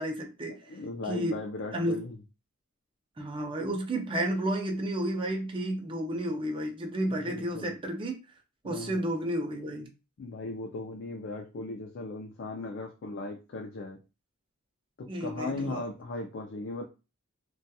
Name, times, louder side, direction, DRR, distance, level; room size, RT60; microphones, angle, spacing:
voice 1, 0.0-0.7 1.1-1.4 1.7-2.0 3.2-8.1 8.6-9.9 15.1-15.8, right 1 dB, 25° right, 0.4 m, -31 dB
voice 2, 0.7-2.2 7.3-7.8 8.6-9.0 10.2-14.0 15.0-16.8, left 2 dB, 55° left, 0.4 m, -37 dB
2.7 x 2.2 x 2.2 m
head